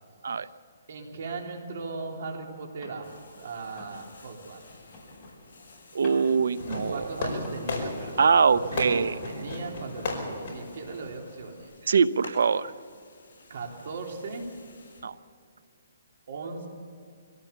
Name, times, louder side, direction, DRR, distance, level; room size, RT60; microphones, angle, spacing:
sound 1, 0.6-3.3 3.6-7.7, left 2 dB, 15° left, 4.3 m, -51 dB
voice 1, 0.9-4.7 6.9-11.7 13.5-14.5 16.3-16.7, right 4 dB, 55° right, 1 dB, 3.6 m, -38 dB
sound 2, 3.0-15.0, left 3 dB, 55° left, 7.8 m, -53 dB
voice 2, 5.9-7.1 8.2-9.2 11.9-12.7 15.0-15.1, right 5 dB, 75° right, 16 dB, 0.7 m, -23 dB
Fireworks, 6.6-11.6, left 2 dB, 35° left, 5.0 m, -35 dB
23.0 x 17.0 x 7.1 m, 2.3 s
hypercardioid pair, 170°, 0 cm